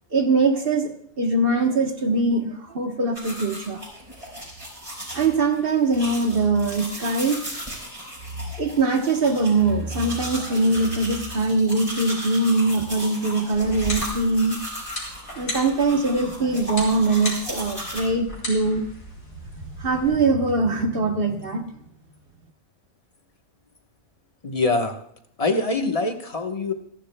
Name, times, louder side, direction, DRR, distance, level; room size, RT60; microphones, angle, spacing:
voice 1, 0.1-3.8 5.1-7.4 8.6-14.6 15.4-18.8 19.6-21.6, right 3 dB, 45° right, 5 dB, 1.2 m, -22 dB
sound 1, 3.1-18.0, equal, 25° right, 5.1 m, -36 dB
sound 2, 13.5-20.1, left 1 dB, 85° left, 4.4 m, -37 dB
voice 2, 24.4-24.9 25.4-26.7, left 3 dB, 30° left, 5 dB, 1.1 m, -24 dB
27.5 x 11.5 x 2.2 m, 0.67 s
omnidirectional pair, 1.4 m